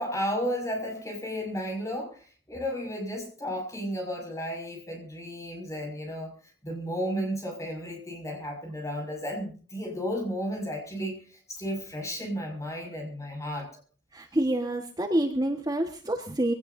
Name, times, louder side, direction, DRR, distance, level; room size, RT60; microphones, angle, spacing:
voice 1, 0.0-6.3 6.6-13.7, equal, 15° left, 2 dB, 5.8 m, -33 dB
voice 2, 14.1-16.5, right 1 dB, 20° right, 3 dB, 1.4 m, -27 dB
23.5 x 17.5 x 2.6 m, 0.38 s
head